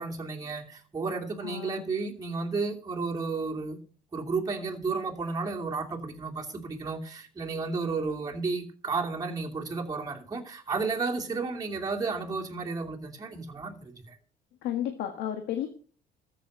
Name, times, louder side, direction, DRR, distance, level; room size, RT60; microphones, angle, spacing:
voice 1, 0.0-3.8 4.1-14.2, right 4 dB, 20° right, 2.6 m, -32 dB
voice 2, 1.4-1.8 14.6-15.7, left 11 dB, 90° left, 1.7 m, -32 dB
13.5 x 7.4 x 6.5 m
cardioid pair, 110°, 17 cm